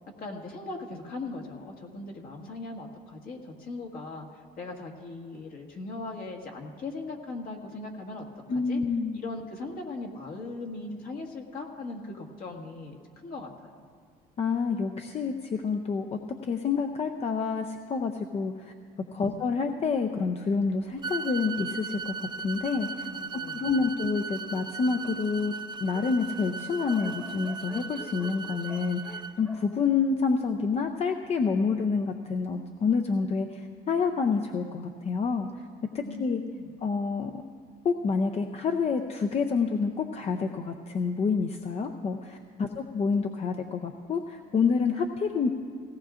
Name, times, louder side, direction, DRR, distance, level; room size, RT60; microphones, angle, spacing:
voice 1, 0.2-8.2 8.5-8.8 9.1-13.8 19.1-19.4 23.1-23.6 36.0-36.7 42.6-42.7, left 3 dB, 60° left, 1 dB, 1.7 m, -39 dB
voice 2, 8.5-9.2 14.4-18.7 19.1-25.5 25.8-35.6 35.9-36.4 36.8-37.4 37.8-45.5, left 5 dB, 40° left, 5 dB, 0.6 m, -28 dB
Dog, 20.0-23.0 23.7-23.8 24.1-24.2 24.4-30.8, equal, 15° left, 1.2 m, -51 dB
sound 1, 21.0-29.3, right 5 dB, 25° right, 0.5 m, -37 dB
17.5 x 17.5 x 2.5 m, 2.1 s
cardioid pair, 110°, 17 cm